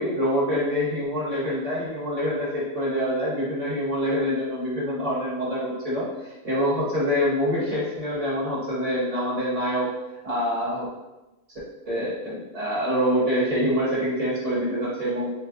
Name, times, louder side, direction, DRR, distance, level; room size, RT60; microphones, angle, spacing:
voice 1, 0.0-6.1 6.4-9.9 10.2-10.9 11.9-15.3, equal, 25° right, -7 dB, 1.1 m, -25 dB
3.1 x 2.4 x 3.7 m, 1.0 s
omnidirectional pair, 1.6 m